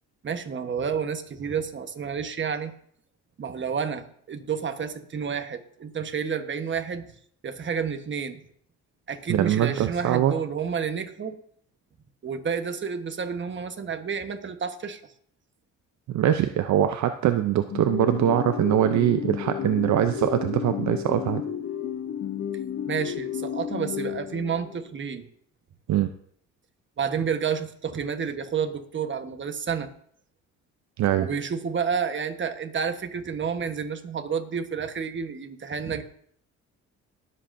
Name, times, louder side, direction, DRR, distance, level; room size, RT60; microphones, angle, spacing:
voice 1, 0.2-2.7 3.4-7.1 7.4-8.4 9.1-11.4 12.2-15.1 22.9-25.2 27.0-29.9 31.2-36.0, right 6 dB, 40° right, 7 dB, 1.2 m, -30 dB
voice 2, 9.3-10.3 16.1-21.4 25.9-26.1 31.0-31.3, right 11 dB, 70° right, 9 dB, 0.6 m, -23 dB
sound 1, 17.7-24.9, left 9 dB, 50° left, 0.9 m, -32 dB
20.5 x 7.7 x 2.6 m, 0.62 s
cardioid pair, 90°, 30 cm